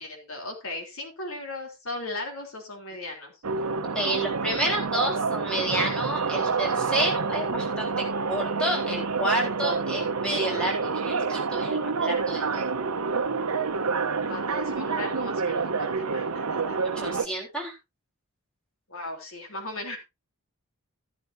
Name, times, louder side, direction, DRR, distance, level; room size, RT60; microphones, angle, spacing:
voice 1, 0.0-3.3 14.3-17.2 18.9-20.0, left 2 dB, 70° left, 3 dB, 3.5 m, -37 dB
sound 1, 3.4-17.3, right 4 dB, 80° right, 0.9 m, -28 dB
voice 2, 3.9-12.7 16.6-17.7, right 1 dB, 5° left, -1 dB, 4.0 m, -30 dB
13.0 x 11.5 x 2.7 m, 0.23 s
head